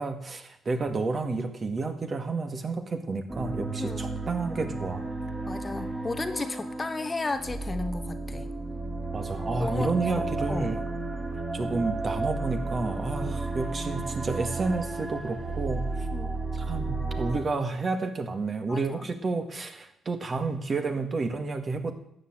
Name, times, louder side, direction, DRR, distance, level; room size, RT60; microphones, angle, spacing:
voice 1, 0.0-5.0 9.1-10.8 11.5-16.1 16.5-21.9, right 3 dB, 40° right, 7 dB, 2.1 m, -30 dB
sound 1, 3.3-17.4, right 3 dB, 20° right, 3.0 m, -33 dB
voice 2, 5.5-8.5 9.6-10.7 16.1-16.3 18.7-19.1, left 3 dB, 25° left, 10 dB, 1.1 m, -34 dB
13.0 x 8.1 x 8.9 m, 0.75 s
cardioid pair, 90°, 0 cm